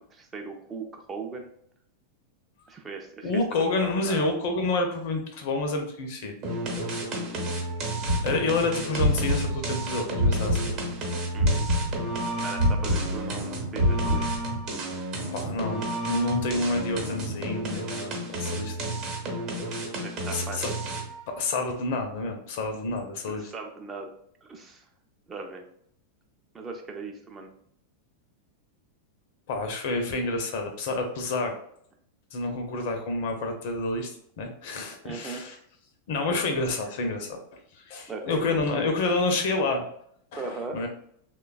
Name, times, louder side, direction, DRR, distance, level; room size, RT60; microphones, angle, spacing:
voice 1, 0.1-1.5 2.7-3.3 3.8-4.3 7.1-7.5 11.3-11.7 12.4-14.2 20.0-20.7 23.3-24.1 24.4-24.8 25.3-25.6 26.5-27.5 35.0-35.4 38.1-38.6 40.4-40.8, right 4 dB, 20° right, 2 dB, 0.4 m, -38 dB
voice 2, 3.2-6.4 8.2-10.7 15.3-18.9 20.3-20.7 21.4-23.5 29.5-31.5 32.3-34.1 34.4-35.6 36.1-37.4 37.7-39.8 40.3-40.9, left 2 dB, 50° left, 4 dB, 0.5 m, -29 dB
sound 1, 6.4-21.2, right 1 dB, 40° right, 0.9 m, -32 dB
sound 2, 8.0-11.0 11.4-14.7, left 1 dB, 80° right, 0.6 m, -26 dB
3.2 x 2.2 x 2.3 m, 0.66 s
figure-of-eight pair, 90°, 0 cm